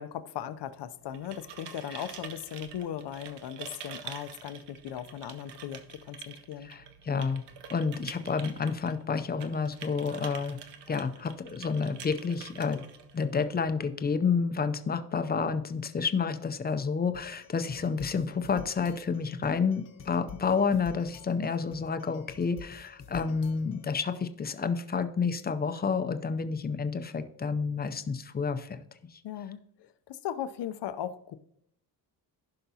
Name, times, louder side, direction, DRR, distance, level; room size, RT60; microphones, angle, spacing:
voice 1, 0.0-6.7 29.2-31.4, left 10 dB, 80° left, 12 dB, 0.6 m, -38 dB
sound 1, 1.0-13.7, right 8 dB, 85° right, 0.8 m, -47 dB
voice 2, 6.6-7.4 7.7-10.6 10.9-12.8 13.1-28.8, left 5 dB, 25° left, 9 dB, 0.4 m, -30 dB
sound 2, 17.1-24.0, left 7 dB, 50° left, 0.9 m, -49 dB
15.0 x 5.8 x 2.7 m, 0.74 s
wide cardioid pair, 170°, 41 cm